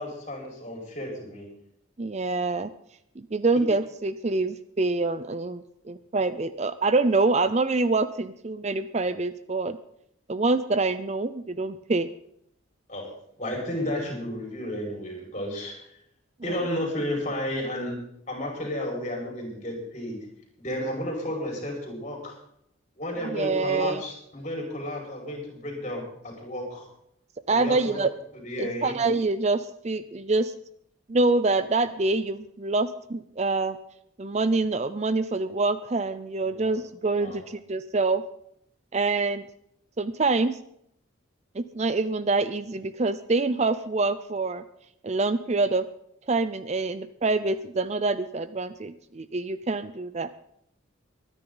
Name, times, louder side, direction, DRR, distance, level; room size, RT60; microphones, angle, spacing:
voice 1, 0.0-1.5 12.9-13.1 13.4-15.8 16.4-18.0 18.3-20.2 20.6-22.4 23.0-26.9 27.5-28.0 28.3-29.0 36.5-36.8 37.2-37.4, left 1 dB, 35° left, 0 dB, 5.2 m, -32 dB
voice 2, 2.0-2.7 3.2-9.8 10.3-12.1 23.3-24.0 27.5-28.1 28.6-30.5 31.1-33.8 34.2-38.2 38.9-39.5 40.0-40.6 41.6-44.6 45.0-45.8 46.3-50.3, right 3 dB, 35° right, 13 dB, 0.5 m, -26 dB
23.0 x 10.0 x 3.9 m, 0.72 s
head